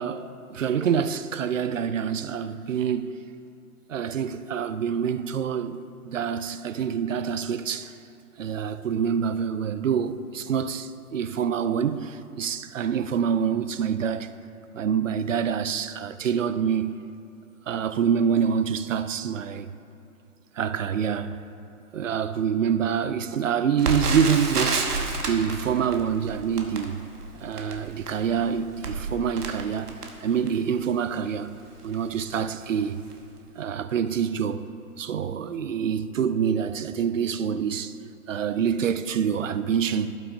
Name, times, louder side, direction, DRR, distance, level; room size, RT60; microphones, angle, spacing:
voice 1, 0.0-3.2 3.9-8.0 8.4-14.4 14.7-17.1 17.7-19.7 20.6-21.4 21.9-27.0 27.4-31.6 31.8-33.0 33.6-34.7 35.0-37.9 38.3-40.2, right 7 dB, 55° right, 0.5 m, -26 dB
Crackle, 23.8-30.8 31.4-31.5 31.8-32.0 32.6-32.8 33.1-33.2, right 3 dB, 75° right, 1.3 m, -30 dB
16.5 x 6.0 x 2.7 m
hypercardioid pair, 160°, 46 cm